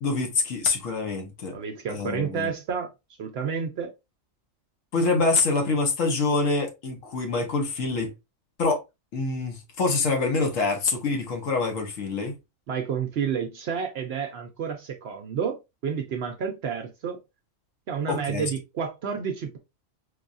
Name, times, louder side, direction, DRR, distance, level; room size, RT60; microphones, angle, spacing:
voice 1, 0.0-1.5 1.9-2.5 4.9-8.1 8.6-8.8 9.1-12.4 18.1-18.5, left 3 dB, 70° left, 1.2 m, -25 dB
voice 2, 1.5-2.9 3.2-3.9 12.7-17.2 17.9-19.6, right 7 dB, 65° right, 0.7 m, -30 dB
4.6 x 2.3 x 2.5 m
omnidirectional pair, 1.4 m